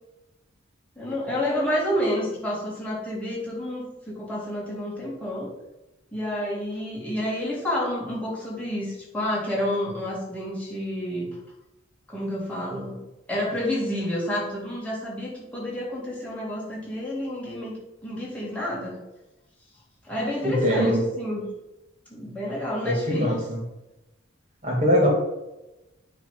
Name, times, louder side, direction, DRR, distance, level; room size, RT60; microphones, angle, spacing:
voice 1, 1.0-5.5 6.1-11.4 12.1-13.0 13.3-17.7 18.0-19.0 20.0-21.4 22.1-23.3, left 1 dB, 5° left, -5 dB, 2.1 m, -29 dB
voice 2, 20.4-21.0 22.8-23.6 24.6-25.1, equal, 35° right, -2 dB, 2.5 m, -22 dB
9.3 x 3.4 x 5.6 m, 0.97 s
head